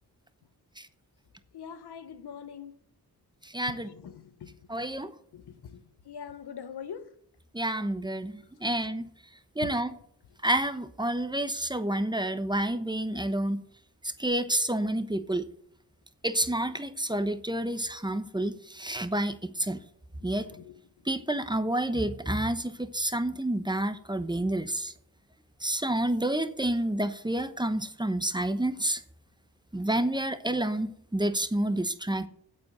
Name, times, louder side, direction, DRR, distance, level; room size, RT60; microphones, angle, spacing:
voice 1, 1.5-2.7 3.7-4.6 5.3-7.1 9.6-9.7 12.5-12.6 20.2-20.8, left 7 dB, 80° left, 1.0 m, -43 dB
voice 2, 3.5-3.9 4.7-5.1 7.5-9.1 9.6-9.9 10.4-13.6 14.2-15.4 16.2-19.8 20.2-20.5 21.1-24.9 25.6-29.0 29.7-32.3, right 1 dB, 10° right, 1.0 m, -29 dB
8.8 x 8.0 x 6.8 m
cardioid pair, 60°, 39 cm